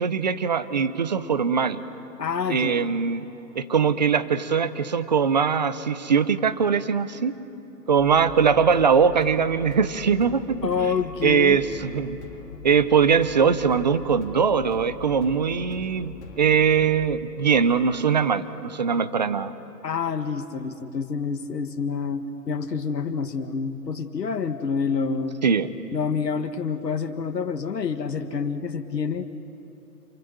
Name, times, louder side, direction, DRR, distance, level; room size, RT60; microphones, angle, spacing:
voice 1, 0.0-1.8 2.5-3.2 3.6-7.4 7.9-10.9 11.2-12.2 12.6-19.5 25.4-25.7, right 6 dB, 25° right, 14 dB, 0.7 m, -21 dB
voice 2, 2.2-2.8 10.6-11.6 19.8-25.4 25.9-29.4, left 5 dB, 80° left, 6 dB, 1.9 m, -28 dB
sound 1, 8.0-17.2, left 5 dB, 45° left, 3.6 m, -42 dB
28.0 x 24.0 x 7.9 m, 3.0 s
hypercardioid pair, 160°, 49 cm